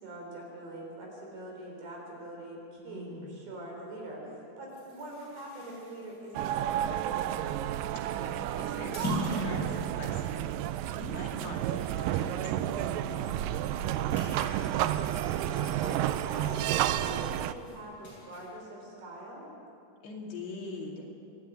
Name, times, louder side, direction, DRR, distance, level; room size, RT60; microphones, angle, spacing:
voice 1, 0.0-7.3 13.6-15.0 15.4-19.5, right 1 dB, 65° right, -1 dB, 6.0 m, -44 dB
voice 2, 2.8-3.4 7.9-10.5 10.9-13.4 20.0-21.1, left 2 dB, 75° left, -1 dB, 4.6 m, -42 dB
sound 1, 4.7-12.7 13.1-13.2 13.5-16.5 16.9-18.5, equal, 25° left, 6.9 m, -42 dB
sound 2, 6.3-17.5, right 12 dB, 90° right, 1.9 m, -31 dB
25.5 x 11.5 x 9.0 m, 2.7 s
omnidirectional pair, 4.7 m